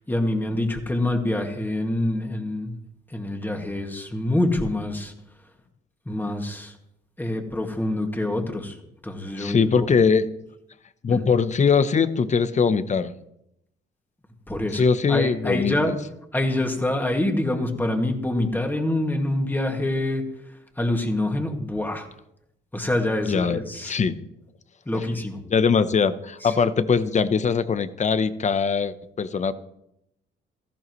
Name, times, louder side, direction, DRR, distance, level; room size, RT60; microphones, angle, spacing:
voice 1, 0.1-2.8 3.1-5.1 6.1-6.7 7.2-8.8 9.0-10.0 11.1-11.2 14.5-14.8 15.1-15.9 16.3-20.2 20.8-22.1 22.7-24.0 24.9-25.4 26.4-26.5, left 1 dB, 10° left, 3 dB, 2.1 m, -26 dB
voice 2, 9.4-10.3 11.0-13.1 14.7-15.9 23.3-24.1 24.9-25.0 25.5-29.5, left 5 dB, 35° left, 13 dB, 0.9 m, -21 dB
17.5 x 14.5 x 3.2 m, 0.80 s
cardioid pair, 90°, 20 cm